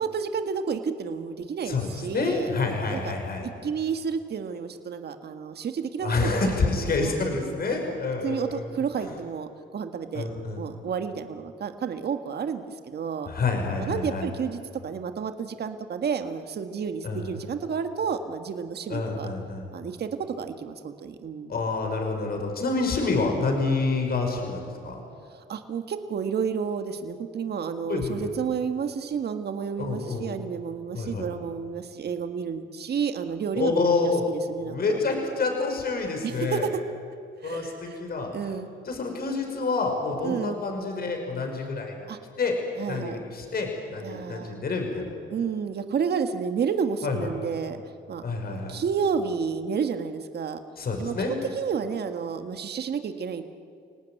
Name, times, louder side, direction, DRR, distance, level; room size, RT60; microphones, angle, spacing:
voice 1, 0.0-2.5 2.9-3.0 3.4-7.1 7.7-8.0 8.2-10.3 10.6-13.3 13.8-19.3 19.7-21.5 25.3-33.8 34.3-35.0 36.2-36.7 37.4-38.0 38.3-38.7 40.2-40.6 42.1-42.2 42.8-43.2 44.0-44.6 45.3-47.8 48.1-50.6 51.0-53.4, right 6 dB, 55° right, 8 dB, 1.8 m, -31 dB
voice 2, 1.6-3.5 6.0-8.7 9.0-9.1 10.1-10.6 13.3-14.3 17.0-17.3 18.9-19.6 21.5-25.0 27.9-28.3 29.8-30.3 30.9-31.3 33.5-34.3 34.6-36.7 37.4-38.3 38.9-42.1 42.4-42.5 42.9-45.1 47.0-47.3 48.2-48.7 50.8-51.3, left 3 dB, 50° left, 3 dB, 5.7 m, -28 dB
29.5 x 18.5 x 9.4 m, 2.4 s
cardioid pair, 90°, 20 cm